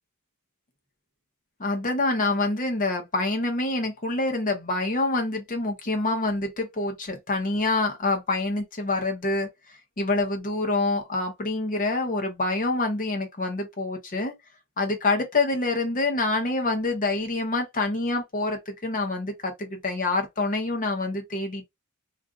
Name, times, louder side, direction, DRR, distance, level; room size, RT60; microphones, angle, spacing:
voice 1, 1.6-9.5 10.0-14.3 14.8-21.6, left 2 dB, 40° left, 0.9 m, -26 dB
2.5 x 2.5 x 3.5 m
head